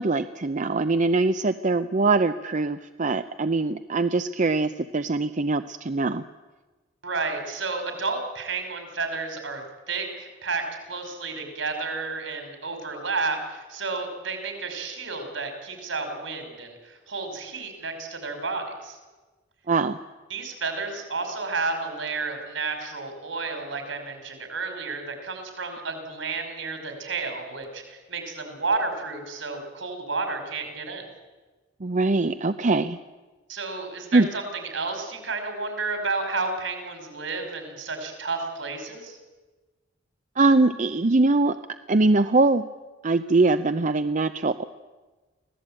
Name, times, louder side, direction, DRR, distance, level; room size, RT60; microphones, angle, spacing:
voice 1, 0.0-6.2 19.7-20.0 31.8-33.0 34.1-34.3 40.4-41.6 41.9-42.7 43.0-44.6, right 3 dB, 40° right, 10 dB, 0.6 m, -22 dB
voice 2, 7.0-19.0 20.3-31.1 33.5-39.2, right 3 dB, 75° right, 6 dB, 5.2 m, -31 dB
24.5 x 17.0 x 8.9 m, 1.2 s
head